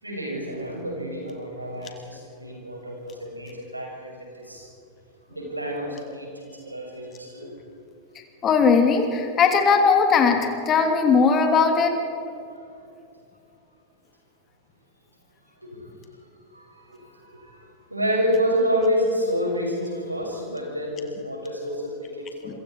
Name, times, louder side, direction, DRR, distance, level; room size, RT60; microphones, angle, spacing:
voice 1, 0.0-4.7 5.3-7.5 15.7-15.8 16.5-22.5, equal, 85° right, -1 dB, 6.8 m, -29 dB
voice 2, 8.4-12.0 22.4-22.5, left 5 dB, 30° left, 4 dB, 3.0 m, -19 dB
27.5 x 24.5 x 4.8 m, 2.6 s
figure-of-eight pair, 90°, 0 cm